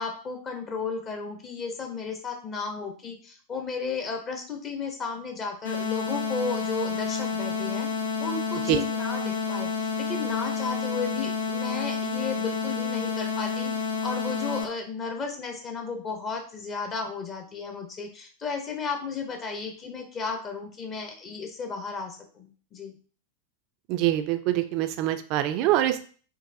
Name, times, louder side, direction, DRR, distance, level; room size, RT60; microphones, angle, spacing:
voice 1, 0.0-7.9 8.2-23.0, left 4 dB, 30° left, 3 dB, 0.6 m, -34 dB
sound 1, 5.6-14.6, left 5 dB, 75° left, 0.6 m, -29 dB
voice 2, 23.9-26.0, right 13 dB, 40° right, 10 dB, 0.3 m, -24 dB
3.9 x 2.5 x 2.5 m, 0.42 s
figure-of-eight pair, 90°, 0 cm